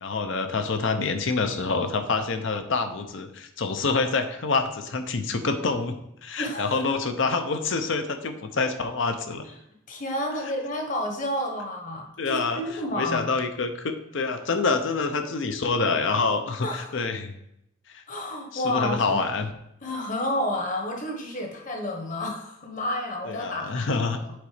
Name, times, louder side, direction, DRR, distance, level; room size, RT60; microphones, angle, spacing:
voice 1, 0.0-9.4 12.2-12.6 12.9-17.3 17.9-18.0 18.5-19.5 23.3-24.2, left 4 dB, 60° left, 8 dB, 0.7 m, -27 dB
voice 2, 6.4-6.8 9.9-13.3 16.6-16.9 18.1-19.2 19.8-23.9 24.2-24.3, left 1 dB, 40° left, 2 dB, 1.2 m, -30 dB
8.0 x 4.0 x 5.0 m, 0.80 s
head